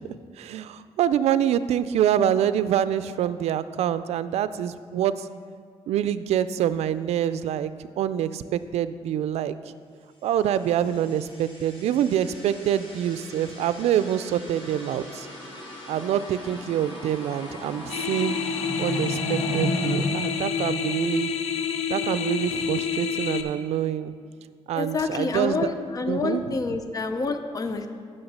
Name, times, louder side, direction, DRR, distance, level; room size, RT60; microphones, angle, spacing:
voice 1, 0.4-5.3 5.9-7.7 8.0-9.6 10.2-15.3 15.9-18.4 18.8-21.3 21.9-24.1 24.7-25.7 26.1-26.8, right 10 dB, 85° right, 13 dB, 0.4 m, -26 dB
sound 1, 10.6-21.3, equal, 50° left, 2.6 m, -35 dB
sound 2, 17.9-23.4, left 7 dB, 90° left, 0.6 m, -28 dB
voice 2, 24.7-27.9, left 3 dB, 35° left, 7 dB, 0.6 m, -28 dB
8.7 x 6.4 x 5.5 m, 2.1 s
cardioid pair, 110°, 11 cm